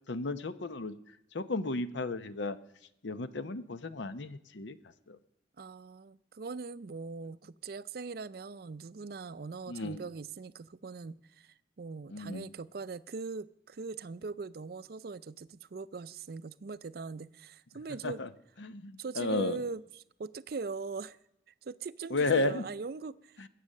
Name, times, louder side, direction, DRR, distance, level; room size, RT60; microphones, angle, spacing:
voice 1, 0.1-1.0 1.3-2.6 3.0-4.8 5.1-5.2 9.7-10.1 12.1-12.5 18.0-18.3 18.6-19.6 22.1-22.6 23.4-23.5, left 2 dB, 70° left, 0.8 m, -33 dB
voice 2, 5.6-18.2 19.0-21.2 21.6-23.5, right 4 dB, 50° right, 0.4 m, -41 dB
21.0 x 8.4 x 6.5 m
head